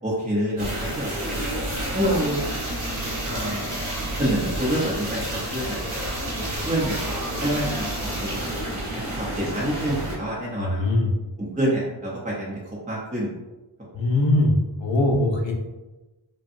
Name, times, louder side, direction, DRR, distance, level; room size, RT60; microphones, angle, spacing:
voice 1, 0.0-1.5 1.9-2.5 3.3-3.7 4.2-5.8 6.3-7.0 7.4-8.4 8.7-8.8 9.2-10.9 11.4-12.6 12.9-13.3, right 1 dB, 15° right, -6 dB, 0.8 m, -27 dB
sound 1, 0.6-10.2, right 1 dB, 75° right, 1.3 m, -29 dB
voice 2, 10.6-11.1 13.9-14.5 14.8-15.5, left 2 dB, 65° left, -1 dB, 1.0 m, -21 dB
5.4 x 2.3 x 2.6 m, 1.1 s
wide cardioid pair, 75°, 49 cm